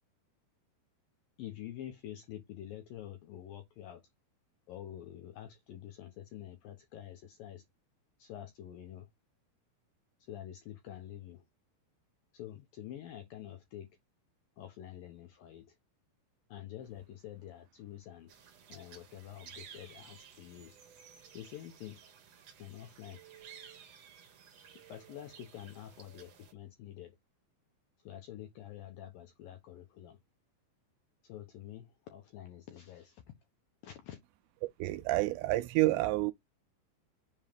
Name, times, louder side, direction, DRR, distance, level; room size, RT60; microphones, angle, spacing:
voice 1, 1.4-4.1 4.7-7.7 8.2-9.1 10.2-11.4 12.3-13.9 14.6-15.8 16.5-18.3 18.7-20.8 21.3-22.0 22.6-23.2 24.9-27.2 28.0-30.2 31.2-33.2 33.8-34.2, left 11 dB, 75° left, 2.1 m, -47 dB
sound 1, 18.3-26.5, right 8 dB, 65° right, 1.7 m, -55 dB
voice 2, 34.8-36.3, right 18 dB, 80° right, 2.7 m, -29 dB
7.3 x 3.1 x 5.0 m
omnidirectional pair, 5.3 m